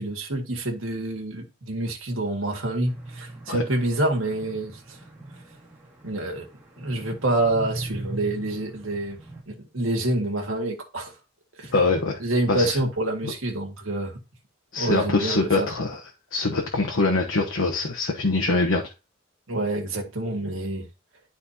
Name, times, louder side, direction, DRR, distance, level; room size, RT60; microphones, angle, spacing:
voice 1, 0.0-5.0 6.0-6.5 6.8-9.2 9.5-11.1 11.6-11.7 12.2-14.2 14.8-15.7 19.5-20.9, right 2 dB, 85° right, 1.9 m, -27 dB
sound 1, 2.9-9.4, right 2 dB, 5° right, 2.2 m, -40 dB
voice 2, 11.7-12.2 12.5-12.8 13.2-13.3 14.7-16.0 16.3-18.8, left 3 dB, 85° left, 1.1 m, -23 dB
11.5 x 4.2 x 2.8 m
head